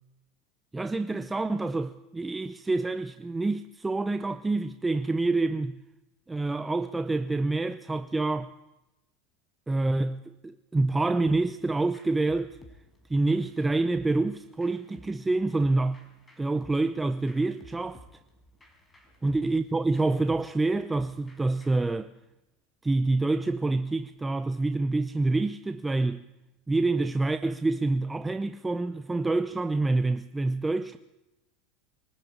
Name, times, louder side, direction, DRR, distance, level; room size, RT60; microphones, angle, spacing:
voice 1, 0.7-5.8 6.3-8.5 9.7-12.6 13.1-16.0 16.4-18.0 19.2-22.1 22.8-26.2 26.7-31.0, right 2 dB, 10° right, 0.7 m, -27 dB
sound 1, 11.3-21.9, left 1 dB, 15° left, 4.9 m, -55 dB
23.0 x 14.0 x 8.8 m
supercardioid pair, 110°, 0 cm